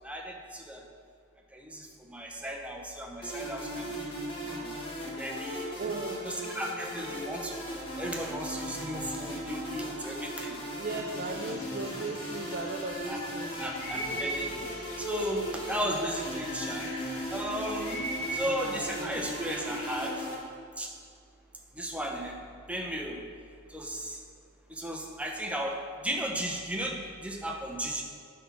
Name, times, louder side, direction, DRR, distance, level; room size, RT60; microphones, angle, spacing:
voice 1, 0.0-0.8 1.5-4.1 4.4-4.7 5.1-5.8 6.2-7.6 8.0-10.6 13.1-13.2 13.6-14.7 15.0-16.9 17.3-18.0 18.3-20.2 20.8-20.9 21.7-22.4 22.7-23.2 23.7-24.2 24.7-25.8 26.0-28.0, right 1 dB, 5° right, 1 dB, 0.8 m, -35 dB
sound 1, 3.2-20.4, equal, 25° left, 1.5 m, -38 dB
voice 2, 5.8-6.2 8.0-8.1 10.8-13.6, right 3 dB, 45° right, 2 dB, 0.4 m, -36 dB
sound 2, 6.5-7.9 8.2-11.9, left 1 dB, 50° left, 1.8 m, -57 dB
sound 3, 11.1-20.0, right 1 dB, 80° left, 2.0 m, -41 dB
9.7 x 3.6 x 6.0 m, 2.3 s
head